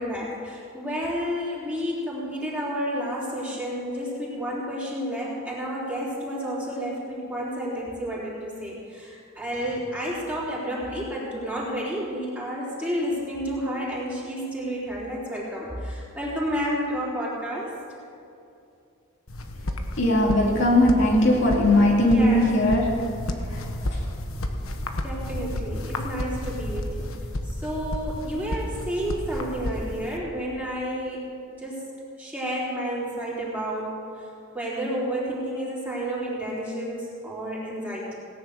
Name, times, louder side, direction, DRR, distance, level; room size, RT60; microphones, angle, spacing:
voice 1, 0.0-17.7 22.1-22.5 25.0-27.1 27.6-31.3 31.6-31.9 32.2-33.9 34.5-38.2, equal, 10° right, -7 dB, 3.8 m, -30 dB
sound 1, 19.3-30.2, left 1 dB, 85° left, 1.3 m, -32 dB
voice 2, 20.0-23.0 23.5-23.6 23.9-24.0, left 1 dB, 60° left, -2 dB, 2.5 m, -19 dB
18.0 x 10.5 x 6.5 m, 2.6 s
head